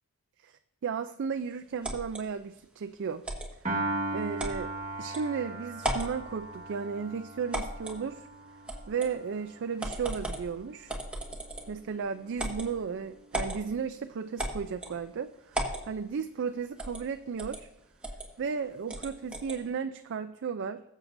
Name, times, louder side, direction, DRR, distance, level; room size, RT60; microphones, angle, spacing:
voice 1, 0.8-3.2 4.1-4.7 5.0-8.3 8.9-11.0 11.7-17.7 18.4-20.8, right 6 dB, 55° right, 9 dB, 0.4 m, -34 dB
sound 1, 1.8-2.2 3.2-3.5 4.4-4.6 5.1-5.2 5.8-6.1 7.5-8.0 8.7-9.1 9.8-10.5 10.9-11.8 12.4-12.7 13.3-13.6 14.4-15.0 15.5-15.8 16.8-17.0 17.4-17.6 18.0-18.3 18.9-19.6, right 1 dB, 5° right, 1.5 m, -35 dB
Piano, 3.7-10.0, right 2 dB, 30° right, 1.7 m, -38 dB
21.0 x 7.3 x 2.6 m, 0.85 s
head